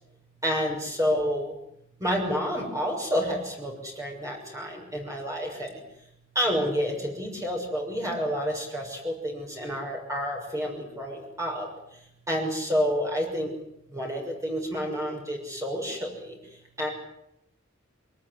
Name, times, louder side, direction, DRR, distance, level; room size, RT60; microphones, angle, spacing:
voice 1, 0.4-1.5 2.0-5.8 6.3-11.7 12.3-13.5 13.9-16.4 16.8-16.9, equal, 15° right, 0 dB, 6.2 m, -29 dB
26.0 x 19.0 x 9.8 m, 0.77 s
head